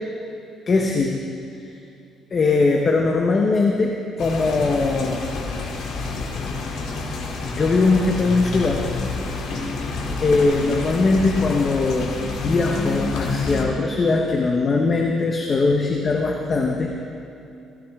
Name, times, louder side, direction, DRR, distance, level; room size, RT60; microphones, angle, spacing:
voice 1, 0.7-1.2 2.3-3.9 4.2-5.2 7.4-8.8 10.2-12.1 12.4-17.0, left 3 dB, 30° left, 1 dB, 0.9 m, -20 dB
sound 1, 4.2-13.7, left 3 dB, 65° left, 2.0 m, -28 dB
17.0 x 16.5 x 3.6 m, 2.7 s
cardioid pair, 165°, 0 cm